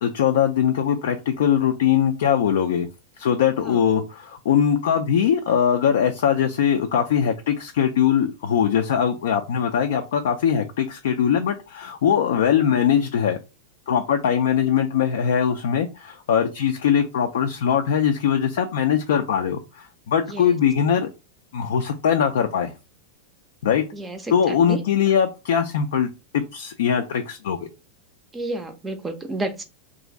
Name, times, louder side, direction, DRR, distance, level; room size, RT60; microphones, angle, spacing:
voice 1, 0.0-2.9 3.2-13.4 13.9-21.1 21.5-22.7 23.6-23.8 24.3-27.7, left 8 dB, 60° left, 0.4 m, -21 dB
voice 2, 20.3-20.6 23.9-24.8 28.3-29.6, right 2 dB, 15° right, 0.5 m, -31 dB
3.1 x 2.5 x 3.7 m
figure-of-eight pair, 90°, 0 cm